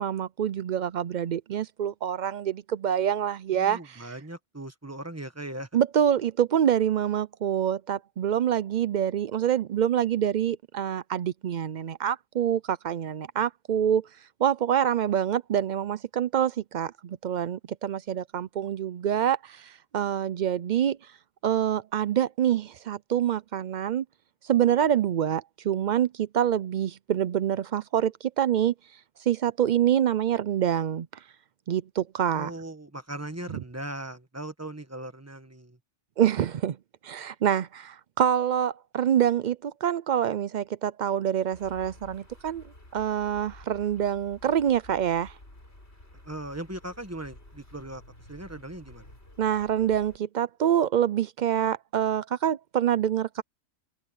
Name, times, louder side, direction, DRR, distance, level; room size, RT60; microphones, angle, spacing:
voice 1, 0.0-4.1 5.7-14.1 14.4-21.0 21.4-24.0 24.4-28.7 29.3-31.1 31.7-32.5 33.5-33.6 36.2-36.8 37.0-42.6 42.9-45.3 49.4-53.4, right 9 dB, 90° right, 0.4 m, -26 dB
voice 2, 3.5-5.7 32.3-35.8 46.2-48.0 48.3-49.1, right 1 dB, 10° right, 1.3 m, -39 dB
sound 1, 41.5-50.2, left 1 dB, 50° left, 6.1 m, -51 dB
open air
omnidirectional pair, 1.4 m